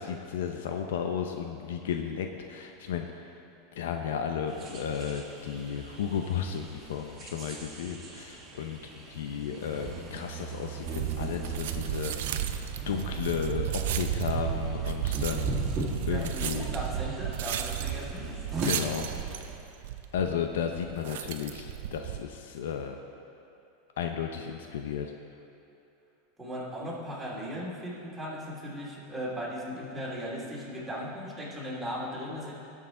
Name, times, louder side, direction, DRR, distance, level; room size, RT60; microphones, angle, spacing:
voice 1, 0.0-3.2 3.7-8.8 9.1-12.5 12.9-13.7 13.9-15.6 16.1-16.7 18.6-19.1 20.1-23.0 24.0-25.1, left 7 dB, 85° left, 4 dB, 0.7 m, -33 dB
sound 1, 4.5-19.6, right 3 dB, 20° right, 1.9 m, -39 dB
sound 2, 10.8-22.2, right 10 dB, 75° right, 0.6 m, -34 dB
voice 2, 16.1-18.3 26.4-32.5, equal, 5° right, -7 dB, 2.6 m, -37 dB
19.0 x 6.5 x 3.8 m, 2.7 s
supercardioid pair, 145°, 0 cm